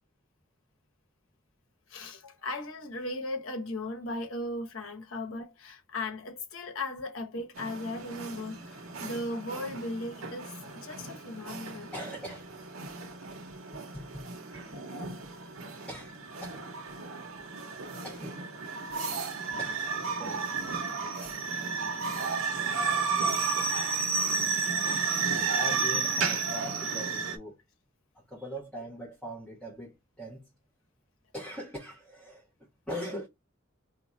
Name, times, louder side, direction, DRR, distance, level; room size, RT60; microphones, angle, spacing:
voice 1, 1.9-11.9 21.5-21.8 23.8-23.9 24.8-25.0, left 2 dB, 80° left, 1.0 m, -37 dB
sound 1, 7.6-27.4, right 5 dB, 85° right, 0.8 m, -33 dB
voice 2, 11.9-12.5 13.1-13.4 13.7-14.2 14.5-15.1 15.9-16.7 18.0-18.4 18.9-19.0 19.5-20.5 21.2-21.3 25.5-27.6 28.1-30.5 31.3-33.3, equal, 5° left, 1.2 m, -42 dB
3.0 x 2.4 x 4.0 m
head